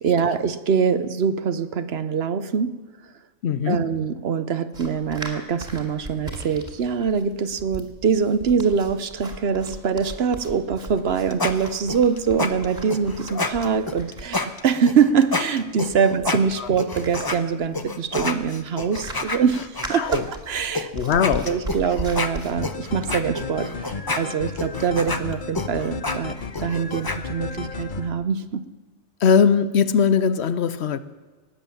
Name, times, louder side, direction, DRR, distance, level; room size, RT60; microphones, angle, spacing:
voice 1, 0.0-2.8 3.7-20.9 21.5-28.7, right 6 dB, 60° right, 0.9 m, -23 dB
voice 2, 3.4-4.0 16.1-16.2 16.6-16.7 19.9-20.3 20.9-21.6 29.2-31.0, left 6 dB, 65° left, 0.9 m, -20 dB
sound 1, 4.7-22.5, right 1 dB, 35° right, 2.5 m, -38 dB
sound 2, 11.0-17.4 17.7-20.2 20.7-20.9 21.1-27.2, left 3 dB, 20° left, 0.8 m, -29 dB
sound 3, 22.6-28.1, left 4 dB, 45° left, 1.0 m, -33 dB
19.5 x 8.1 x 7.1 m
omnidirectional pair, 1.3 m